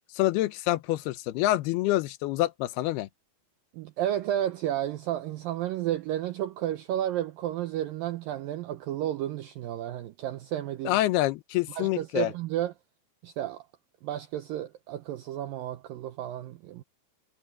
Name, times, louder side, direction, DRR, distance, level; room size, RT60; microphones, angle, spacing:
voice 1, 0.1-3.1 10.9-12.3, left 16 dB, 75° left, 2.7 m, -26 dB
voice 2, 3.7-11.0 11.7-12.7 13.2-13.7 14.0-16.8, right 12 dB, 75° right, 2.2 m, -32 dB
omnidirectional pair, 4.8 m